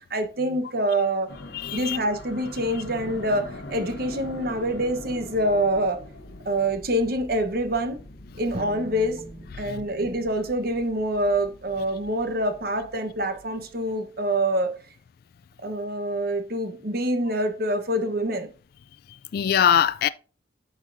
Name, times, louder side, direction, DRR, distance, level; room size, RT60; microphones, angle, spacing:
voice 1, 0.1-1.3 1.7-6.0 6.4-8.0 8.4-9.2 9.6-14.8 15.6-18.5, right 1 dB, 55° right, 1.1 m, -26 dB
sound 1, 1.3-13.9, left 1 dB, 85° left, 1.0 m, -43 dB
voice 2, 1.5-2.0 9.7-9.8 19.3-20.1, left 8 dB, 55° left, 0.3 m, -22 dB
sound 2, 8.5-9.5, right 2 dB, 40° right, 0.6 m, -42 dB
8.6 x 6.5 x 2.6 m
head